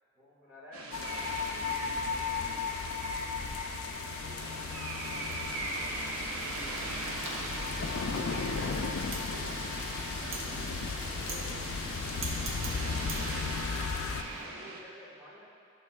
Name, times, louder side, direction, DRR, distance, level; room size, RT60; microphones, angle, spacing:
voice 1, 0.1-2.6 5.9-8.8 12.3-13.2 14.1-15.4, left 1 dB, 10° right, -9 dB, 1.7 m, -53 dB
sound 1, 0.7-14.8, right 2 dB, 90° right, 0.7 m, -41 dB
sound 2, 0.9-14.2, left 5 dB, 80° left, 0.4 m, -36 dB
voice 2, 4.2-5.3 10.2-11.6 12.6-13.2, left 2 dB, 50° left, -4 dB, 0.9 m, -51 dB
Wind, 6.2-14.4, right 1 dB, 70° right, 1.1 m, -40 dB
11.0 x 6.1 x 2.3 m, 2.3 s
head